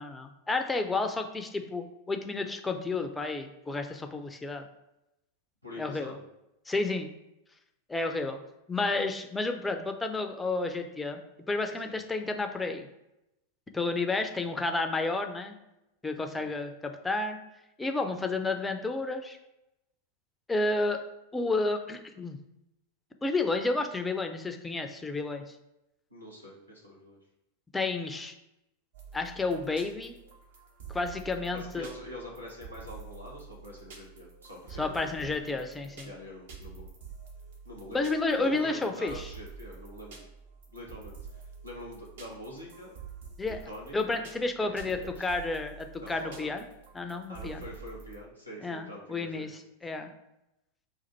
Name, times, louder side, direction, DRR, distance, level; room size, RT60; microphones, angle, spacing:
voice 1, 0.0-4.7 5.8-6.2 6.7-7.1 7.9-8.4 8.7-11.2 11.5-12.9 13.7-15.5 16.0-17.4 17.8-19.4 20.5-21.0 21.3-22.4 23.2-25.4 27.7-28.3 29.1-30.1 30.9-31.9 34.8-36.1 37.9-39.3 43.4-43.6 43.9-46.6 46.9-47.6 48.6-50.1, left 3 dB, 10° left, 6 dB, 0.4 m, -31 dB
voice 2, 5.6-6.2 11.8-11.9 16.4-16.5 26.1-27.2 31.5-35.6 36.0-36.9 37.6-40.2 40.7-43.0 43.5-44.1 44.6-45.3 46.0-46.5 47.3-49.5, left 1 dB, 90° right, -4 dB, 1.2 m, -45 dB
sound 1, 28.9-48.2, right 5 dB, 60° right, 0.9 m, -48 dB
4.2 x 2.5 x 4.0 m, 0.89 s
figure-of-eight pair, 90°, 0 cm